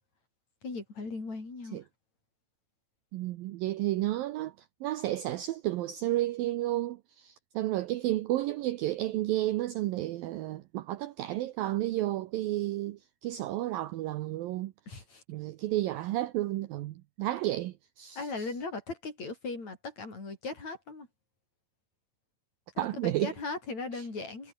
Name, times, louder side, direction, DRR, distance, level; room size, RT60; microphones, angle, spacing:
voice 1, 0.6-1.8 14.9-15.2 18.2-21.1 22.8-24.5, left 3 dB, 40° left, 7.8 m, -38 dB
voice 2, 3.1-4.5 4.8-14.7 15.3-18.3 22.8-23.3 23.9-24.1, right 15 dB, 75° right, 2.2 m, -32 dB
omnidirectional pair, 4.9 m